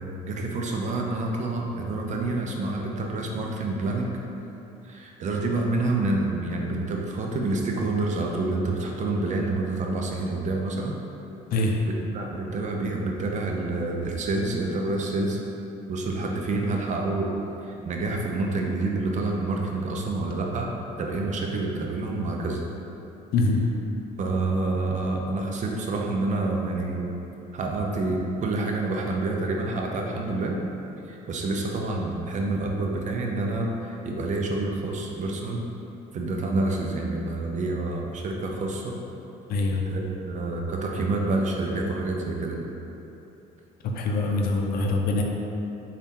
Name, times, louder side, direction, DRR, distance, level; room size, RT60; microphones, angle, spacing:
voice 1, 0.0-4.1 4.8-11.0 11.6-15.4 15.9-17.3 17.7-20.7 21.0-22.8 24.2-27.0 27.5-30.6 31.1-35.6 36.1-39.0 39.8-42.6, right 2 dB, 45° right, 0 dB, 0.5 m, -28 dB
voice 2, 39.5-39.8 44.0-45.2, left 2 dB, 60° left, 1 dB, 0.5 m, -24 dB
4.0 x 2.4 x 3.6 m, 3.0 s
cardioid pair, 110°, 17 cm